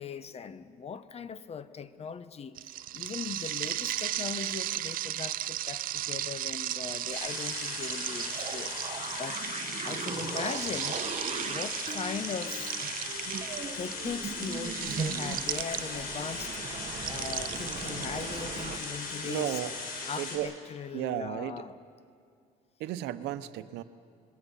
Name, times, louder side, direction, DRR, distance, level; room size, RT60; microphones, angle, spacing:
voice 1, 0.0-9.4 9.8-11.0 11.4-12.7 13.7-16.6 17.1-19.6 20.1-21.7, left 6 dB, 40° left, 13 dB, 1.0 m, -39 dB
sound 1, 2.6-16.2 17.0-18.8, right 13 dB, 60° right, 0.5 m, -36 dB
sound 2, 7.1-20.4, left 4 dB, 65° left, 5.0 m, -38 dB
sound 3, 8.3-18.8, right 7 dB, 40° right, 1.2 m, -39 dB
voice 2, 19.2-19.7 20.2-20.5 20.9-21.7 22.8-23.8, right 13 dB, 85° right, 12 dB, 0.9 m, -34 dB
27.0 x 21.0 x 5.7 m, 2.3 s
cardioid pair, 110°, 17 cm